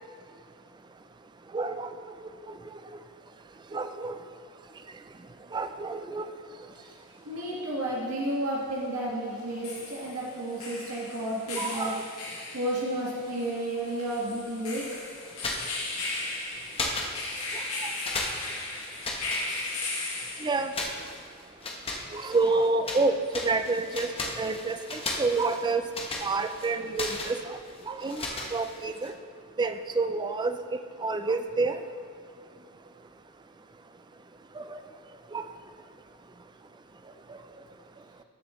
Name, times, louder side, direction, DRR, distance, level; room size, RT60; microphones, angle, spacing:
voice 1, 1.5-1.9 2.5-2.6 3.7-4.2 5.5-6.3 11.5-12.0 17.8-17.9 20.4-20.7 22.1-24.1 24.4-25.8 26.2-27.6 27.9-28.2 28.5-29.1 29.6-30.6 31.0-31.8 34.6-34.8 35.3-35.5, right 3 dB, 20° right, 8 dB, 0.3 m, -28 dB
sound 1, 6.8-6.9 9.4-21.0, left 2 dB, 75° left, 1.9 m, -37 dB
voice 2, 7.2-12.0 12.5-14.8, right 1 dB, 85° right, -5 dB, 1.5 m, -32 dB
sound 2, 15.3-16.4 16.7-17.7 18.0-20.1 20.7-23.0 23.3-29.1, left 2 dB, 25° left, 0.9 m, -36 dB
13.5 x 6.7 x 3.1 m, 2.1 s
head